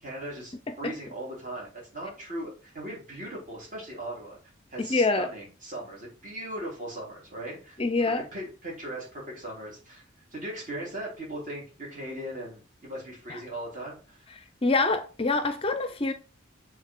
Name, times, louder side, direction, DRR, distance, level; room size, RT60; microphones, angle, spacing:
voice 1, 0.0-4.4 4.7-10.0 10.3-14.3, right 1 dB, 40° right, 3.3 m, -38 dB
voice 2, 4.8-5.3 7.8-8.2 13.3-13.4 14.6-16.1, left 3 dB, 30° left, 0.5 m, -25 dB
7.5 x 3.8 x 3.7 m
head